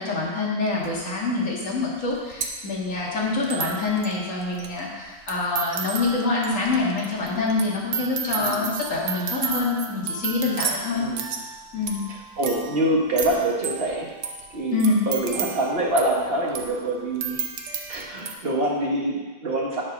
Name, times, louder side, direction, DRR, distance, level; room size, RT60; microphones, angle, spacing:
voice 1, 0.0-11.1 11.7-12.0 14.7-15.0, left 3 dB, 55° left, -3 dB, 2.2 m, -25 dB
sound 1, 0.8-0.9 1.7-1.8 2.0-18.3, right 6 dB, 55° right, 1.1 m, -33 dB
voice 2, 8.4-8.7 11.0-11.2 12.4-14.1 14.5-14.8 15.1-17.4 17.7-19.8, right 1 dB, 40° right, -3 dB, 1.7 m, -25 dB
9.8 x 4.5 x 6.0 m, 1.2 s
omnidirectional pair, 1.6 m